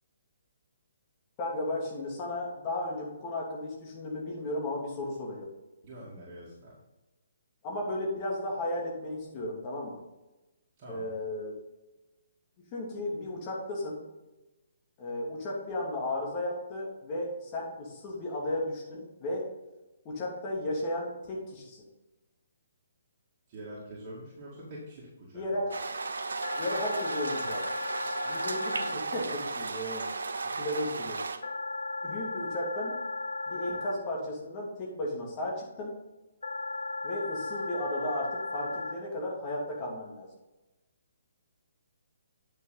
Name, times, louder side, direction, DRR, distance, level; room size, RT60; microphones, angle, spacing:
voice 1, 1.4-5.5 7.6-10.0 10.9-11.6 12.7-14.0 15.0-19.5 20.0-21.9 25.3-25.7 26.5-27.7 28.2-30.1 30.6-31.2 32.1-33.0 33.5-35.9 37.0-40.3, left 1 dB, 30° left, -2 dB, 2.7 m, -34 dB
voice 2, 5.8-6.7 10.8-11.1 23.5-25.3 27.4-27.5 27.8-27.9 32.0-32.1, right 1 dB, 30° right, -7 dB, 2.3 m, -45 dB
sound 1, 25.7-31.4, right 3 dB, 65° right, 0.7 m, -35 dB
sound 2, 26.4-28.9 31.4-33.9 36.4-38.9, left 2 dB, 65° left, 0.8 m, -35 dB
8.9 x 6.3 x 3.9 m, 1.0 s
figure-of-eight pair, 130°, 0 cm